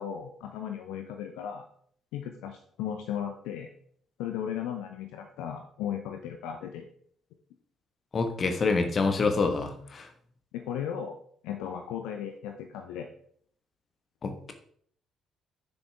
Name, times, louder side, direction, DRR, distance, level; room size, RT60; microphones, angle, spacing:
voice 1, 0.0-1.6 2.1-3.7 4.2-6.9 10.5-11.2 11.4-13.1, left 9 dB, 65° left, 5 dB, 0.7 m, -36 dB
voice 2, 8.1-10.1 14.2-14.5, left 4 dB, 40° left, 7 dB, 1.4 m, -27 dB
10.0 x 7.2 x 3.5 m, 0.62 s
figure-of-eight pair, 45°, 0 cm